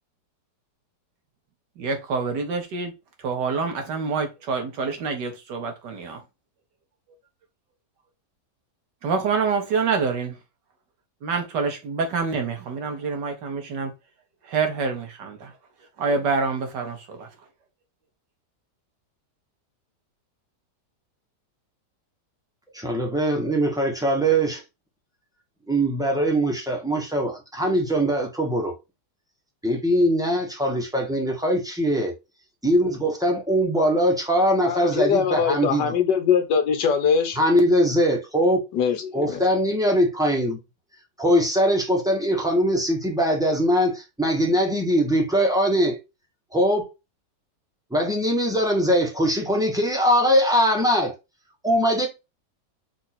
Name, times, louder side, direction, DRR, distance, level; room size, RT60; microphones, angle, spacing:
voice 1, 1.8-2.9 3.2-6.2 9.0-10.4 11.2-13.9 14.4-15.5 16.0-17.3, right 4 dB, 80° right, 1.7 m, -26 dB
voice 2, 22.7-24.6 25.7-28.7 29.6-32.1 32.6-35.8 37.4-38.6 39.1-40.6 41.2-46.0 46.5-46.9 47.9-51.1 51.6-52.1, equal, 5° right, 0.8 m, -21 dB
voice 3, 34.6-37.4 38.7-39.5, left 6 dB, 80° left, 1.5 m, -22 dB
4.4 x 2.6 x 4.2 m
omnidirectional pair, 1.8 m